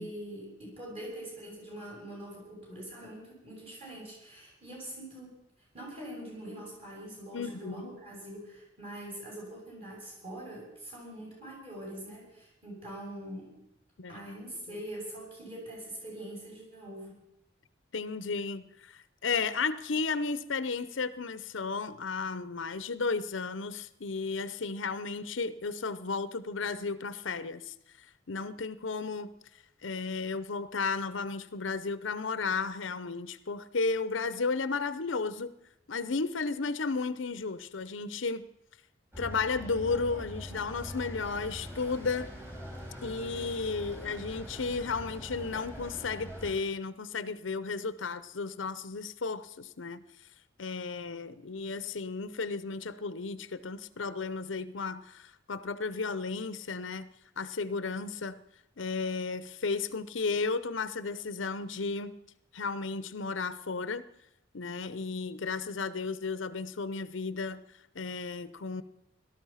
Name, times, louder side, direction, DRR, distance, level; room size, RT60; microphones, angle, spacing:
voice 1, 0.0-5.3 5.7-13.6 14.1-17.2, right 1 dB, 30° right, -3 dB, 7.4 m, -43 dB
voice 2, 7.3-7.9 14.0-14.2 14.7-14.8 17.9-27.7 28.3-29.3 29.8-35.5 35.9-38.5 39.2-42.3 43.0-50.0 50.6-57.1 57.4-58.4 58.8-62.1 62.5-64.0 64.5-67.6 67.9-68.8, left 4 dB, 75° left, 15 dB, 0.7 m, -34 dB
sound 1, 39.1-46.6, equal, 10° right, 3.8 m, -43 dB
18.0 x 13.0 x 5.7 m, 0.84 s
head